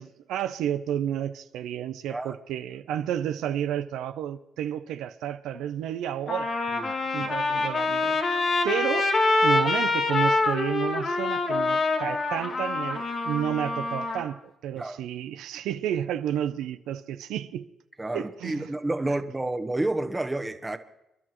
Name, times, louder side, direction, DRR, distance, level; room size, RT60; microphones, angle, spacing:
voice 1, 0.0-6.5 7.1-9.1 9.4-17.6 18.1-18.7 19.1-19.2, right 10 dB, 85° right, 0.5 m, -31 dB
Trumpet, 5.6-5.7 6.3-14.2, left 3 dB, 50° left, 2.0 m, -25 dB
voice 2, 7.2-7.7 14.8-15.0 18.0-20.8, right 2 dB, 15° right, 1.1 m, -30 dB
28.0 x 11.0 x 3.0 m
cardioid pair, 90°, 0 cm